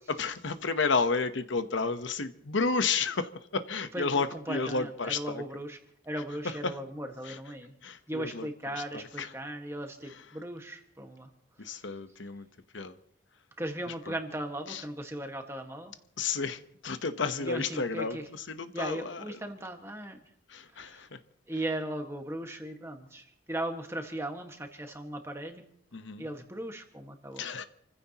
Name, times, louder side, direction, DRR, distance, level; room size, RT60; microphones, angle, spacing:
voice 1, 0.1-5.4 6.6-6.7 7.8-8.5 9.2-9.3 11.6-12.4 12.7-12.9 14.7-14.8 16.2-18.2 18.5-19.2 20.5-21.1 25.9-26.2 27.4-27.6, left 4 dB, 80° left, 1.0 m, -31 dB
voice 2, 3.9-5.8 6.0-7.7 8.1-11.3 11.6-11.8 13.6-15.9 17.4-18.3 18.7-20.2 20.7-21.0 21.5-25.6 26.2-27.5, right 1 dB, 15° right, 1.6 m, -38 dB
28.5 x 15.5 x 3.0 m
head